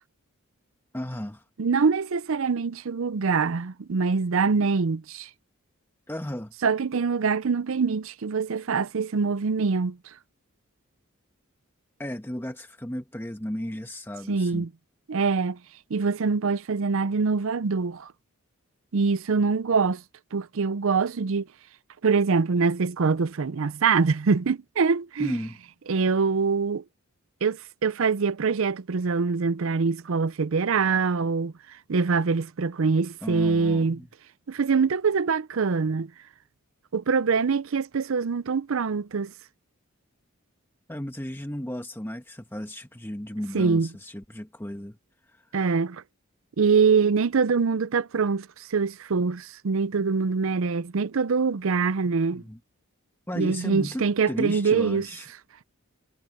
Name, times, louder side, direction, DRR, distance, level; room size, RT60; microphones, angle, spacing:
voice 1, 0.9-1.4 6.1-6.5 12.0-14.7 25.2-25.6 33.2-34.1 40.9-45.0 45.5-45.7 52.3-52.6 53.3-55.3, equal, 10° left, 1.3 m, -34 dB
voice 2, 1.6-5.3 6.6-10.0 14.3-14.7 15.1-15.6 15.9-18.1 18.9-20.0 20.3-21.5 22.0-25.4 25.9-26.8 27.4-31.5 31.9-34.0 34.5-36.1 36.9-39.3 43.5-43.9 45.5-46.0 46.6-52.4 53.4-55.1, right 5 dB, 65° right, 0.5 m, -24 dB
head